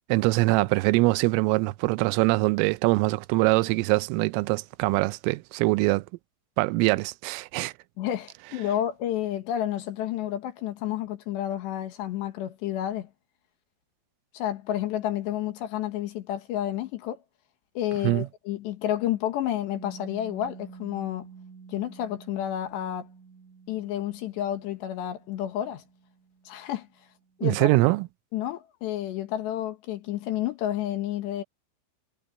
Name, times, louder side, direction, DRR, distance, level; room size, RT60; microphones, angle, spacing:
voice 1, 0.1-6.0 6.6-7.7 18.0-18.3 27.4-28.1, right 23 dB, 85° right, 3.2 m, -23 dB
voice 2, 8.0-13.1 14.3-17.2 17.7-21.3 21.7-23.1 23.7-25.8 26.5-26.9 27.4-27.9 28.3-31.4, left 11 dB, 70° left, 3.4 m, -30 dB
Piano, 19.8-27.1, right 5 dB, 70° right, 6.4 m, -49 dB
omnidirectional pair, 5.8 m